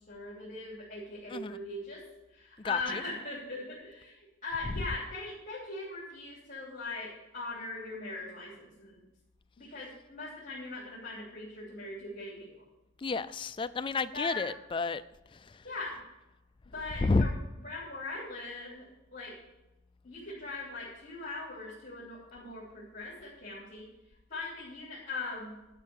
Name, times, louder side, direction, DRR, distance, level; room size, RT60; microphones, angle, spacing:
voice 1, 0.1-2.0 2.3-9.0 9.6-12.6 14.1-14.5 15.6-15.9 16.6-17.4 17.6-19.3 20.0-23.9 24.3-25.6, left 3 dB, 40° left, -7 dB, 3.2 m, -40 dB
voice 2, 13.0-15.0 17.0-17.3, left 3 dB, 25° left, 12 dB, 0.3 m, -30 dB
11.5 x 5.5 x 8.6 m, 0.99 s
head